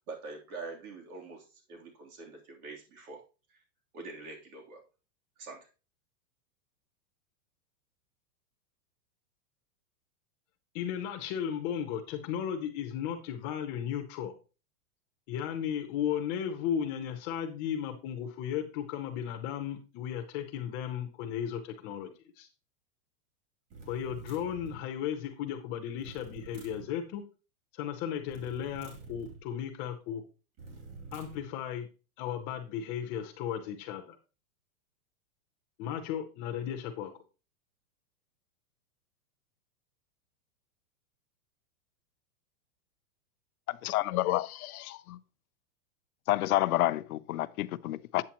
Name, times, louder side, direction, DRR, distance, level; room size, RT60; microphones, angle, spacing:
voice 1, 0.0-3.2 3.5-3.6 3.9-4.8 5.4-5.7, right 3 dB, 70° right, 3.3 m, -45 dB
voice 2, 10.7-14.3 15.3-22.5 23.9-27.2 27.7-30.2 31.1-31.9 32.2-34.2 35.8-37.1, left 9 dB, 25° left, 0.6 m, -35 dB
sound 1, 23.7-24.9 26.0-26.9 28.3-29.4 30.6-31.5, right 4 dB, 35° right, 2.7 m, -47 dB
voice 3, 43.7-45.2 46.3-48.2, left 16 dB, 70° left, 0.6 m, -29 dB
8.5 x 8.3 x 2.9 m
supercardioid pair, 160°, 45 cm